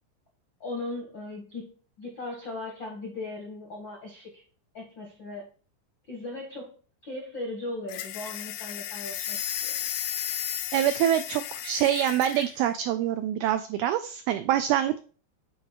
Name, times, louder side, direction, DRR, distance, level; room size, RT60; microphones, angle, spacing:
voice 1, 0.6-1.7 2.0-4.4 4.7-5.5 6.1-6.7 7.0-9.8, left 2 dB, 60° left, -1 dB, 1.2 m, -38 dB
sound 1, 7.9-12.5, left 12 dB, 85° left, 2.7 m, -34 dB
voice 2, 10.7-15.0, right 11 dB, 85° right, 9 dB, 2.2 m, -25 dB
8.4 x 4.6 x 4.5 m, 0.39 s
omnidirectional pair, 5.0 m